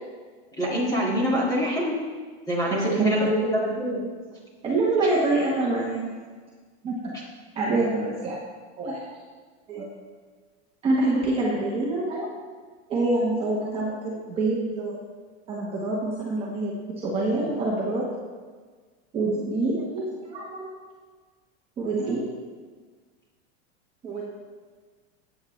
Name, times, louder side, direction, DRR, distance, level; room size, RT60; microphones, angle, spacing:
voice 1, 0.6-1.9 2.5-4.0, equal, 10° left, -5 dB, 2.2 m, -25 dB
voice 2, 2.7-3.1 4.6-6.2 6.8-7.1 7.5-8.4 8.8-9.0 9.7-9.9 10.8-12.3 12.9-15.0 15.5-18.0 19.1-20.7 21.8-22.2 24.0-24.2, right 2 dB, 15° right, -6 dB, 1.3 m, -26 dB
15.5 x 8.6 x 3.3 m, 1.5 s
supercardioid pair, 175°, 34 cm